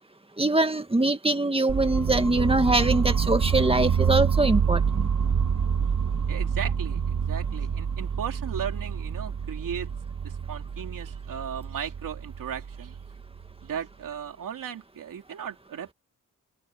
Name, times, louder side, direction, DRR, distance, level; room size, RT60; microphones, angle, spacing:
voice 1, 0.4-5.1, right 2 dB, 15° right, 2.0 m, -23 dB
sound 1, 1.7-13.6, right 7 dB, 55° right, 2.1 m, -27 dB
voice 2, 6.3-9.9 10.2-13.0 13.6-15.9, right 8 dB, 80° right, 3.1 m, -36 dB
cardioid pair, 75°, 32 cm